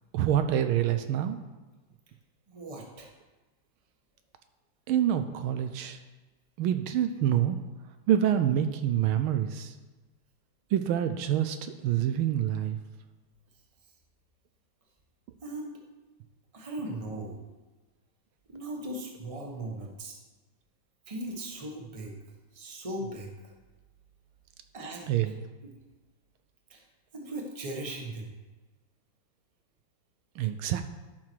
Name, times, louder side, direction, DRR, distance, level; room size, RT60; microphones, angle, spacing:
voice 1, 0.1-1.4 4.9-6.0 6.6-7.6 8.1-9.7 10.7-12.8 25.1-25.3 30.4-30.8, right 10 dB, 80° right, 8 dB, 1.4 m, -26 dB
voice 2, 2.5-3.1 15.4-15.7 16.5-17.4 18.5-20.2 21.1-22.1 22.5-23.5 24.7-25.1 26.7-26.8 27.1-28.3, right 1 dB, 20° right, 0 dB, 1.2 m, -38 dB
12.0 x 5.8 x 4.6 m, 1.2 s
omnidirectional pair, 2.3 m